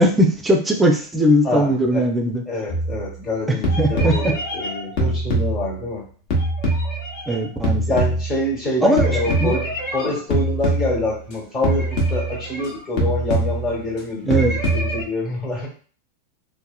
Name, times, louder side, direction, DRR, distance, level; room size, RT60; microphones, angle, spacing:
voice 1, 0.0-2.4 3.5-4.3 7.3-8.0 8.8-9.6 14.2-14.5, right 1 dB, 10° right, 3 dB, 0.5 m, -19 dB
voice 2, 1.4-2.0 2.5-6.0 7.9-9.7 9.9-15.7, left 2 dB, 35° left, -5 dB, 1.2 m, -26 dB
sound 1, 2.7-3.3 3.6-6.0 6.3-8.7 9.0-11.3 11.6-12.7 13.0-14.0 14.3-15.0, right 1 dB, 55° left, 0.9 m, -23 dB
2.8 x 2.1 x 2.3 m, 0.42 s
hypercardioid pair, 115°, 0 cm